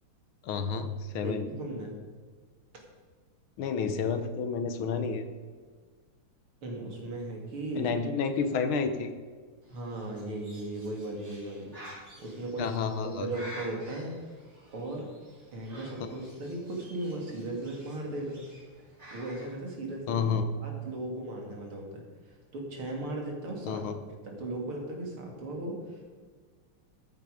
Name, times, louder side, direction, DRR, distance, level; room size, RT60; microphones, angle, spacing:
voice 1, 0.4-1.5 3.6-5.2 7.7-9.1 12.6-13.3 16.0-16.1 20.1-20.5 23.7-24.0, left 5 dB, 75° left, 9 dB, 1.8 m, -30 dB
voice 2, 1.2-1.9 6.6-7.9 9.7-11.7 12.2-12.7 13.0-14.2 14.7-15.1 15.5-18.4 19.1-20.3 20.6-23.9 24.2-26.1, right 2 dB, 75° right, 0 dB, 3.4 m, -37 dB
Bird, 9.6-19.5, equal, 30° right, 4.3 m, -50 dB
14.0 x 9.4 x 5.0 m, 1.5 s
omnidirectional pair, 2.4 m